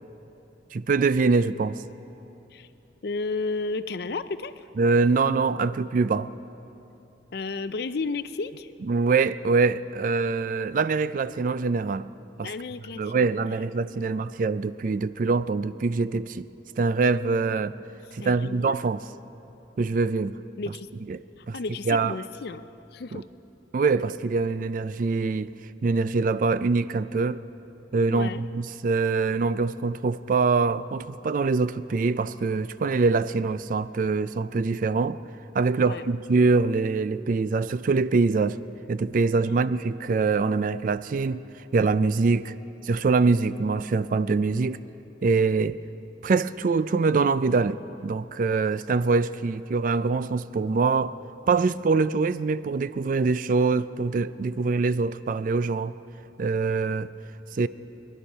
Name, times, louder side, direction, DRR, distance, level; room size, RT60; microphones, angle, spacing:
voice 1, 0.7-1.8 4.8-6.3 8.8-12.1 12.4-12.5 13.0-16.5 16.8-17.7 18.1-19.0 19.8-20.4 21.1-21.2 21.5-21.6 21.9-22.2 23.1-23.2 23.7-25.5 25.8-27.4 27.9-35.2 35.5-38.6 38.9-41.4 41.7-42.5 42.8-44.8 45.2-45.8 46.2-51.1 51.5-55.9 56.4-57.1 57.6-57.7, right 4 dB, 45° right, 15 dB, 0.3 m, -24 dB
voice 2, 3.0-4.6 7.3-8.7 12.4-13.3 13.9-14.2 18.2-18.8 20.6-20.9 21.5-22.7 22.9-23.2 28.1-28.4 35.8-36.0 39.5-39.7, left 3 dB, 55° left, 13 dB, 0.5 m, -33 dB
22.0 x 11.5 x 5.5 m, 2.9 s
head